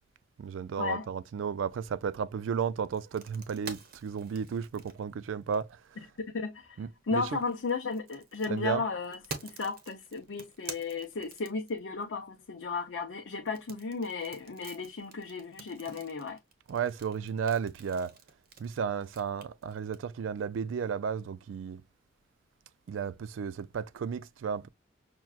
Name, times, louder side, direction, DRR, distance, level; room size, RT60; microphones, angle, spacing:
voice 1, 0.4-5.7 6.8-7.4 8.5-8.8 16.7-18.1 18.6-21.8 22.9-24.7, right 6 dB, 80° right, 0.3 m, -33 dB
sound 1, 2.9-5.9 7.3-12.0 13.5-20.0, right 5 dB, 50° right, 0.8 m, -47 dB
voice 2, 6.3-16.4, left 4 dB, 80° left, 0.6 m, -34 dB
5.8 x 2.2 x 2.3 m
head